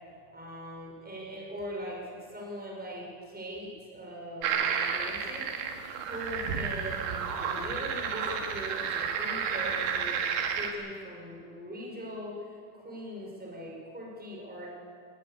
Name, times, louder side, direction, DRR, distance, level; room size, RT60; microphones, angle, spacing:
voice 1, 0.3-10.2 10.5-14.7, equal, ahead, -2 dB, 4.6 m, -41 dB
sound 1, 4.4-10.7, right 7 dB, 85° right, 3.7 m, -31 dB
20.5 x 18.5 x 8.5 m, 2.2 s
omnidirectional pair, 4.8 m